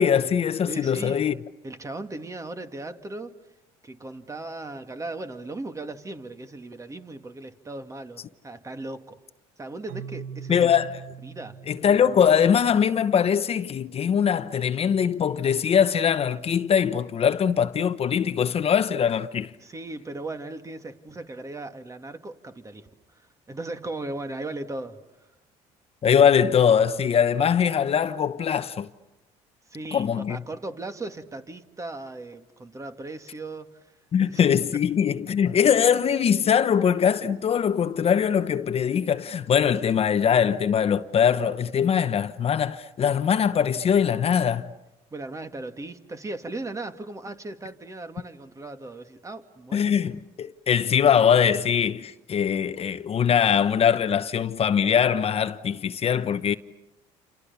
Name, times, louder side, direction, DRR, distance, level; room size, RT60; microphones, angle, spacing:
voice 1, 0.0-1.3 10.5-11.0 11.7-19.5 26.0-28.9 29.9-30.4 34.1-44.7 49.7-56.5, left 8 dB, 40° left, 1.1 m, -22 dB
voice 2, 0.7-1.3 1.6-3.3 3.8-9.2 9.6-10.7 11.2-11.6 19.6-22.9 23.1-25.0 29.7-33.9 34.2-34.4 45.1-50.0, right 2 dB, 20° right, 2.4 m, -37 dB
Keyboard (musical), 9.9-13.6, right 7 dB, 75° right, 1.5 m, -42 dB
29.5 x 28.0 x 7.1 m
supercardioid pair, 95°, 15 cm